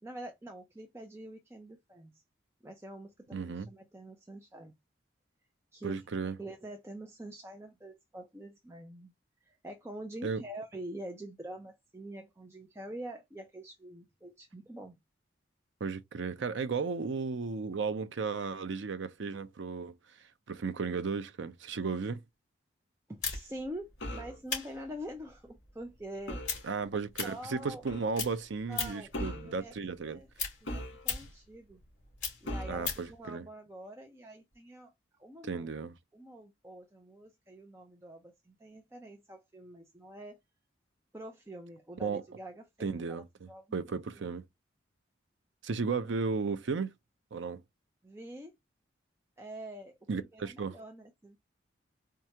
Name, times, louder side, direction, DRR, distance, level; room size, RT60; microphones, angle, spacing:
voice 1, 0.0-2.1 2.6-4.7 5.7-6.0 6.4-9.1 9.4-15.0 23.1-26.4 26.9-27.8 28.7-29.7 30.1-30.3 30.6-31.8 32.4-34.9 35.2-35.7 36.1-40.4 41.1-43.9 48.0-48.6 49.4-51.4, right 1 dB, 15° right, 0.6 m, -46 dB
voice 2, 3.3-3.7 5.8-6.4 10.2-10.4 15.8-22.2 26.6-30.2 32.7-33.5 35.5-35.9 42.0-42.2 42.8-44.4 45.6-46.9 47.3-47.6 50.1-50.8, right 4 dB, 70° right, 0.5 m, -35 dB
sound 1, 23.2-27.9 28.1-29.2 29.5-33.1, left 6 dB, 40° left, 3.0 m, -38 dB
sound 2, 24.0-24.4 26.3-26.6 27.9-28.1 29.1-29.5 30.7-31.3 32.5-32.9, equal, 65° left, 2.3 m, -39 dB
4.4 x 2.4 x 2.8 m
head